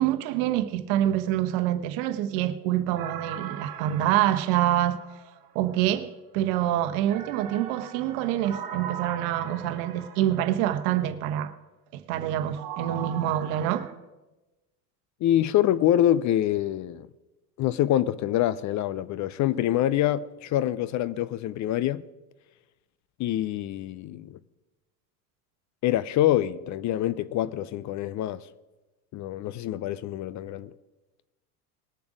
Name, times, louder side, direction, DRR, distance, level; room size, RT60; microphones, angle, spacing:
voice 1, 0.0-5.0 5.5-11.5 11.9-13.9, right 12 dB, 65° right, 1.1 m, -26 dB
sound 1, 3.0-5.8 7.1-10.9 12.6-13.9, right 9 dB, 45° right, 1.9 m, -40 dB
voice 2, 15.2-17.1 17.6-22.0 23.2-24.4 25.8-28.4 29.1-30.7, left 12 dB, 40° left, 0.5 m, -25 dB
20.0 x 7.0 x 5.0 m
hypercardioid pair, 85°, 48 cm